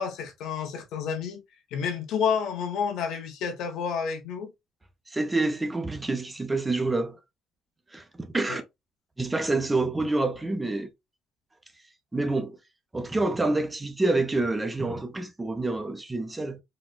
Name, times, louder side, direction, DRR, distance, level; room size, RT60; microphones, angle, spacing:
voice 1, 0.0-1.4 1.7-4.5 8.5-8.6, left 6 dB, 80° left, 0.9 m, -30 dB
voice 2, 5.1-7.2 7.9-8.6 9.2-10.9 12.1-12.6 12.9-16.6, right 2 dB, 10° right, 0.5 m, -27 dB
4.1 x 2.1 x 2.2 m
cardioid pair, 150°, 0 cm